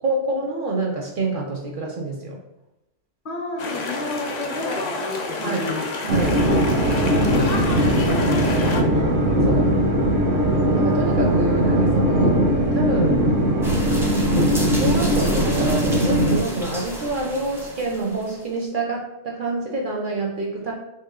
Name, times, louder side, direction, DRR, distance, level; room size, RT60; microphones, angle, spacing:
voice 1, 0.0-2.4 5.4-5.7 6.0-6.4 9.5-9.8 10.8-12.4 12.7-13.4 14.7-20.7, right 2 dB, 60° right, -1 dB, 0.6 m, -27 dB
voice 2, 3.2-5.9 6.4-7.8 8.1-9.1, left 2 dB, 50° left, 1 dB, 0.8 m, -31 dB
sound 1, 3.6-8.8, left 3 dB, 65° left, 0.4 m, -29 dB
sound 2, 6.1-16.4, right 1 dB, 85° right, 1.1 m, -20 dB
sound 3, 13.6-18.5, equal, 5° right, 0.4 m, -31 dB
2.9 x 2.7 x 3.6 m, 0.92 s
omnidirectional pair, 1.3 m